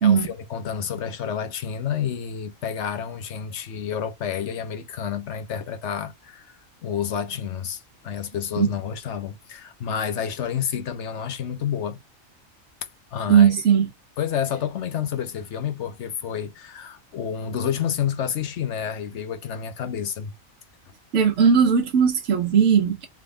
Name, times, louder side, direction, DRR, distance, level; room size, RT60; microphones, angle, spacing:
voice 1, 0.0-12.0 13.1-13.5 14.2-20.3, left 8 dB, 60° left, 1.0 m, -29 dB
voice 2, 13.3-13.9 21.1-23.1, right 7 dB, 60° right, 1.2 m, -18 dB
3.6 x 3.5 x 3.3 m
omnidirectional pair, 1.4 m